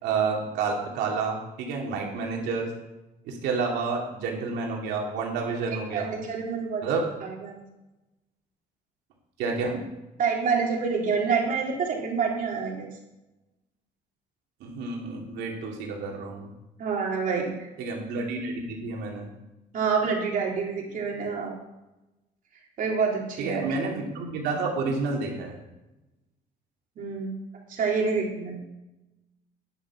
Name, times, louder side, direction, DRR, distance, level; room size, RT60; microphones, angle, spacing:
voice 1, 0.0-2.7 3.3-6.1 6.8-7.0 9.4-9.8 14.6-16.5 17.8-19.3 23.4-25.6, right 4 dB, 85° right, 0 dB, 2.8 m, -29 dB
voice 2, 5.7-6.8 7.2-7.6 10.2-12.9 16.8-17.5 19.7-21.5 22.8-23.7 27.0-27.4 27.7-28.6, right 5 dB, 55° right, -1 dB, 3.4 m, -27 dB
10.5 x 8.0 x 6.1 m, 0.98 s
cardioid pair, 110°, 17 cm